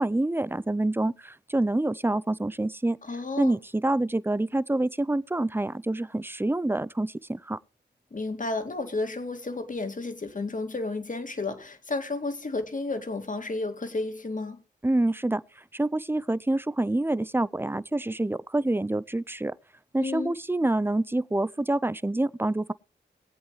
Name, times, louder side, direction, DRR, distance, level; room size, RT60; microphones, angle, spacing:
voice 1, 0.0-3.0 3.4-7.6 14.8-15.4 15.7-19.5 19.9-22.7, right 2 dB, 10° right, 0.5 m, -27 dB
voice 2, 3.0-3.6 8.1-14.6 20.0-20.3, left 3 dB, 45° left, 2.4 m, -32 dB
21.5 x 8.0 x 3.1 m
cardioid pair, 55°, 19 cm